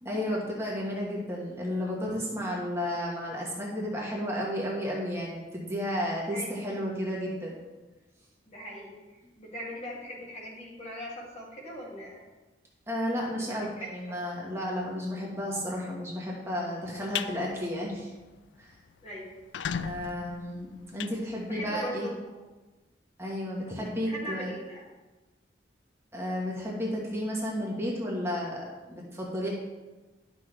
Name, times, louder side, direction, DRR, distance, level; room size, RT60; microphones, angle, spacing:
voice 1, 0.0-7.6 12.9-18.1 18.6-18.7 19.8-22.1 23.2-24.5 26.1-29.5, equal, 15° right, -3 dB, 1.3 m, -32 dB
voice 2, 8.5-12.3 13.3-14.2 19.0-19.3 21.3-22.4 24.0-24.8, equal, 40° left, -4 dB, 2.1 m, -40 dB
sound 1, 16.9-17.3 17.8-18.0 18.4-18.5 18.7-18.8 19.3-21.9, left 7 dB, 85° left, 0.3 m, -36 dB
10.5 x 6.1 x 3.3 m, 1.2 s
head